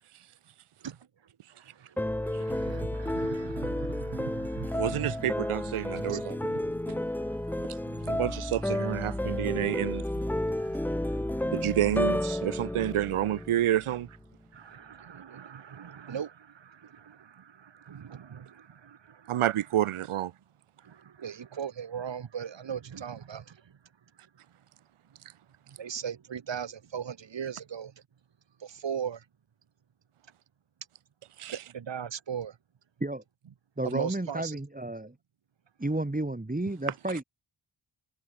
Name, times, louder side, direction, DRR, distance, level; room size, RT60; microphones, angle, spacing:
sound 1, 2.0-14.1, left 1 dB, 5° left, 0.5 m, -32 dB
voice 1, 2.5-5.1 6.1-6.2 11.6-11.7 14.7-16.3 17.9-18.4 21.2-23.4 25.8-27.9 28.8-29.2 31.7-32.5 33.8-34.5, right 7 dB, 60° right, 1.2 m, -37 dB
voice 2, 4.7-6.4 8.1-10.0 11.5-14.1 19.3-20.3 31.4-31.6, right 12 dB, 85° right, 0.7 m, -29 dB
voice 3, 33.8-35.1 35.8-37.2, right 2 dB, 15° right, 2.6 m, -32 dB
wide cardioid pair, 65°, 49 cm